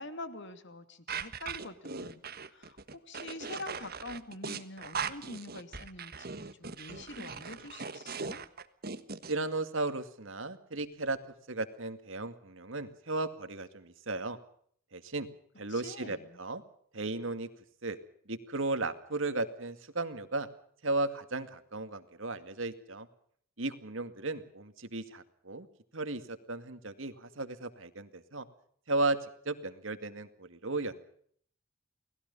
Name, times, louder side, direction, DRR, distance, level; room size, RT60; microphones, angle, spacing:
voice 1, 0.0-8.4 15.7-16.4, left 2 dB, 55° left, 9 dB, 2.5 m, -45 dB
sound 1, 1.1-9.3, right 5 dB, 45° right, 1.5 m, -39 dB
voice 2, 9.3-11.2 11.5-14.4 14.9-15.3 15.6-16.6 16.9-17.5 17.8-18.0 18.3-20.5 20.8-23.1 23.6-25.7 25.9-28.5 28.9-29.2 29.5-30.9, right 2 dB, 60° right, 10 dB, 2.2 m, -35 dB
29.5 x 19.5 x 5.5 m, 0.62 s
head